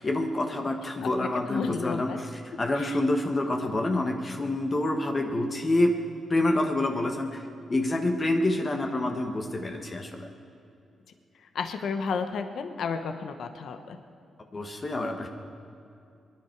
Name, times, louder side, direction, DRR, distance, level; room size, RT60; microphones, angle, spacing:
voice 1, 0.0-6.0 6.3-7.4 7.7-10.3 14.5-15.3, left 1 dB, 35° left, 3 dB, 1.4 m, -27 dB
voice 2, 1.5-2.2 11.5-14.0, left 5 dB, 75° left, 7 dB, 1.0 m, -31 dB
23.5 x 10.5 x 4.7 m, 2.5 s
cardioid pair, 85°, 0 cm